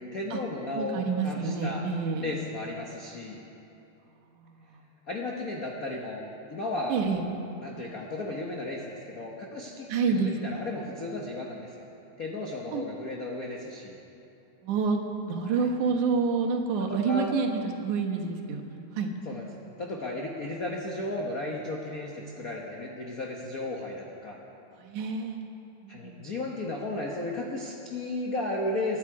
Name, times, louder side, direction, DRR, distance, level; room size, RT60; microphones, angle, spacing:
voice 1, 0.0-1.9 2.2-3.4 5.1-7.0 7.6-11.9 12.2-14.0 15.5-15.7 16.9-17.3 19.2-19.4 19.8-24.4 25.9-29.0, left 2 dB, 65° left, -1 dB, 0.8 m, -34 dB
voice 2, 0.8-2.4 6.9-7.3 9.9-10.6 12.7-12.8 14.6-15.0 15.3-19.1 24.8-25.4 25.8-26.3, right 5 dB, 85° right, 2 dB, 2.7 m, -28 dB
24.0 x 10.5 x 4.8 m, 2.8 s
omnidirectional pair, 3.4 m